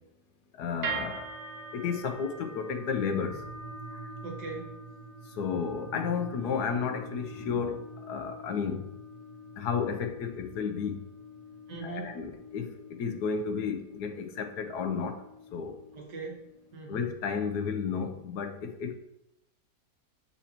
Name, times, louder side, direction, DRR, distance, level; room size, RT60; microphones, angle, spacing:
voice 1, 0.6-1.3 1.7-3.5 3.9-4.1 5.3-8.9 9.6-11.0 11.8-15.2 15.5-15.8 16.9-19.0, left 6 dB, 70° left, 6 dB, 1.3 m, -32 dB
sound 1, 0.8-17.0, right 2 dB, 65° right, 1.5 m, -44 dB
voice 2, 4.2-4.8 11.7-12.2 15.9-17.0, right 4 dB, 80° right, 1 dB, 1.9 m, -41 dB
7.2 x 6.8 x 2.9 m, 0.85 s
omnidirectional pair, 1.8 m